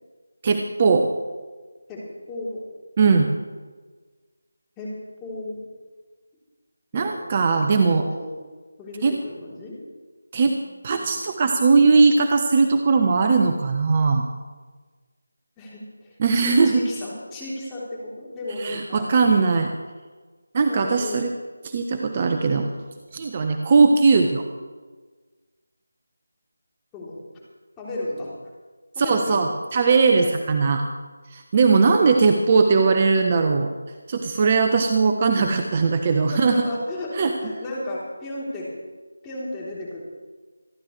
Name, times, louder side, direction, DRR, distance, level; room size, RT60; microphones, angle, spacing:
voice 1, 0.4-1.0 3.0-3.3 6.9-8.1 9.0-9.1 10.3-10.5 10.8-14.3 16.2-16.8 18.6-19.7 20.5-21.3 21.6-22.7 23.1-24.4 29.0-30.8 31.3-33.7 34.1-36.6 37.1-37.3, right 4 dB, 30° right, 5 dB, 0.9 m, -19 dB
voice 2, 2.3-2.7 4.8-4.9 5.2-5.6 6.9-7.2 7.6-8.3 8.8-9.8 10.9-11.1 15.6-19.1 20.7-21.2 26.9-27.2 27.8-28.3 29.0-29.6 30.2-30.4 36.3-38.7 39.2-40.0, left 1 dB, 10° left, -7 dB, 3.5 m, -34 dB
27.0 x 11.5 x 3.3 m, 1.4 s
figure-of-eight pair, 165°, 0 cm